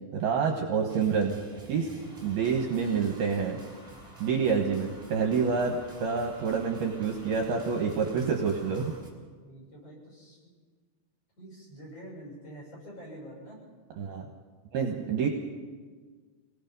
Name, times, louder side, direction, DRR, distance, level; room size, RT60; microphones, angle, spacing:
voice 1, 0.1-1.4 1.7-1.9 2.2-3.6 4.2-8.9 14.0-14.3 14.7-15.3, right 6 dB, 65° right, 2 dB, 2.8 m, -27 dB
sound 1, 0.9-9.1, right 2 dB, 10° right, 2.6 m, -50 dB
sound 2, 2.0-9.0, right 1 dB, 60° left, 7.8 m, -54 dB
voice 2, 9.4-10.4 11.4-13.6 14.8-15.1, right 1 dB, 30° left, -4 dB, 8.2 m, -47 dB
26.0 x 19.0 x 5.4 m, 1.5 s
omnidirectional pair, 5.4 m